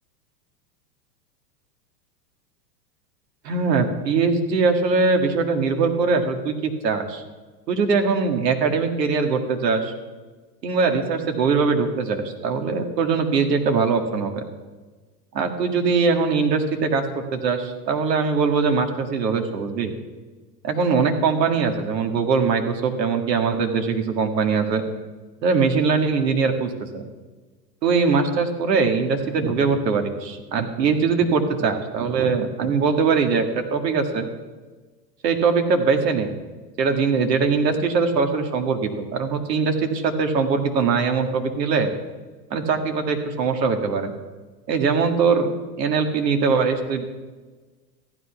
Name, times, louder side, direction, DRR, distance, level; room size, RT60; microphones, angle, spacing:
voice 1, 3.4-7.2 7.7-9.9 10.6-14.4 15.3-19.9 20.6-24.8 25.4-27.0 27.8-33.5 33.7-34.3 35.2-36.3 36.8-41.9 42.5-44.1 44.7-45.5 45.8-47.0, right 5 dB, 80° right, 6 dB, 2.1 m, -21 dB
14.5 x 10.5 x 5.8 m, 1.3 s
hypercardioid pair, 110°, 49 cm